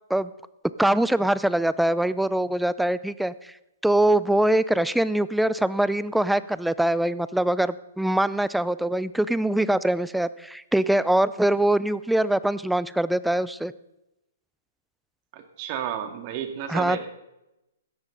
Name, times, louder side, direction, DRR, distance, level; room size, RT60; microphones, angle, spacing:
voice 1, 0.8-3.5 3.8-13.7 16.7-17.0, right 1 dB, ahead, 17 dB, 0.4 m, -23 dB
voice 2, 15.3-17.1, right 9 dB, 40° right, 6 dB, 2.2 m, -32 dB
16.5 x 13.0 x 3.9 m, 0.92 s
hypercardioid pair, 125°, 0 cm